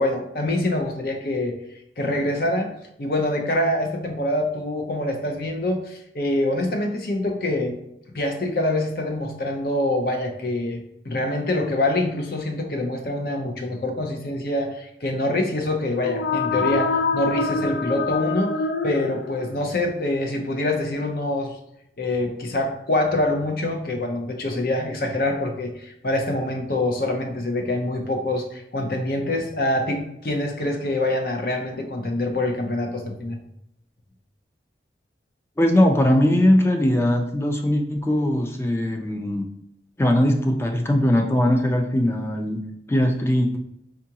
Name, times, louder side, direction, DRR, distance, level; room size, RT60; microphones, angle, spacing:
voice 1, 0.0-1.5 2.0-2.7 3.0-7.8 8.1-18.6 18.8-21.5 22.0-33.4, left 1 dB, 55° left, 3 dB, 0.6 m, -25 dB
sound 1, 15.9-19.7, left 4 dB, 90° left, 0.3 m, -25 dB
voice 2, 35.6-39.4 40.0-42.6 42.9-43.6, left 1 dB, 15° left, 3 dB, 0.4 m, -20 dB
4.5 x 2.5 x 2.8 m, 0.77 s
head